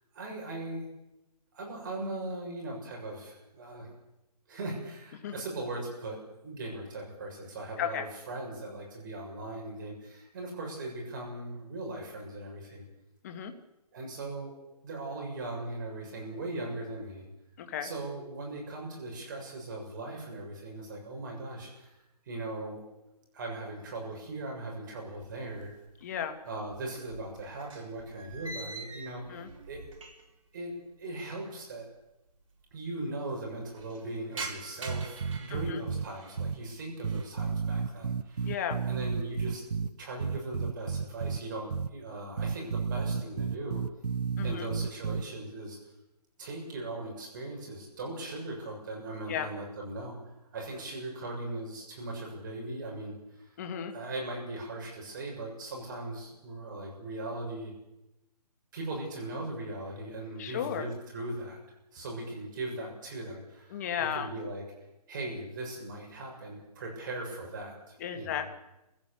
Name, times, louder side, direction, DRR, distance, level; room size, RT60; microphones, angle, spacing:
voice 1, 0.1-0.9 1.5-3.9 4.5-12.8 13.9-17.3 17.8-21.9 22.2-22.8 23.3-25.7 26.4-30.0 30.5-31.9 32.7-38.5 38.8-43.8 44.4-45.8 46.4-50.2 50.5-53.5 53.9-57.7 58.7-61.6 61.9-64.6 65.1-68.4, right 2 dB, 30° right, 0 dB, 6.9 m, -39 dB
voice 2, 17.6-17.9 26.0-26.3 29.3-29.5 35.5-35.8 38.4-38.8 44.4-44.7 49.3-49.5 53.6-53.9 60.4-60.8 63.7-64.3 68.0-68.5, left 9 dB, 25° left, 6 dB, 1.6 m, -34 dB
sound 1, 25.2-26.1 26.4-30.5 30.7-30.8 31.7-31.8 32.0-32.1 32.3-32.8 33.2-36.4 36.9-37.4 37.8-38.2 38.6-39.5, right 3 dB, 55° right, 4.1 m, -45 dB
sound 2, 34.9-36.1 36.4-36.6 37.0-39.9 40.2-41.4 41.7-41.9 42.4-45.2, right 5 dB, 75° right, 0.9 m, -31 dB
22.5 x 16.0 x 8.6 m, 0.93 s
hypercardioid pair, 165°, 20 cm